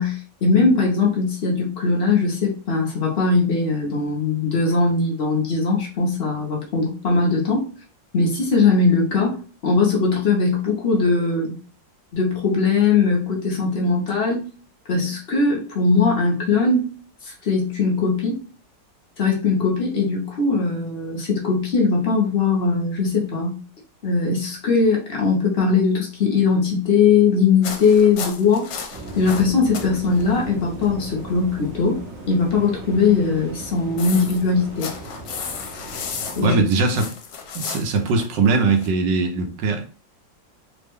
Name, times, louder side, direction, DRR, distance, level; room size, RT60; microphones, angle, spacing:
voice 1, 0.0-7.6 8.1-9.4 9.6-11.5 12.1-14.4 14.9-16.9 17.2-18.4 19.2-23.6 24.0-28.7 29.2-32.0 32.3-34.9 36.4-36.6, left 4 dB, 50° left, 0.7 m, -20 dB
sound 1, 27.6-29.9 30.2-30.4 30.8-30.9 33.6-38.9, left 6 dB, 75° left, 1.3 m, -33 dB
sound 2, 28.9-36.5, right 1 dB, 50° right, 0.9 m, -37 dB
voice 2, 36.4-37.0 37.5-39.8, right 4 dB, 75° right, 1.3 m, -20 dB
3.3 x 2.1 x 3.5 m
omnidirectional pair, 2.0 m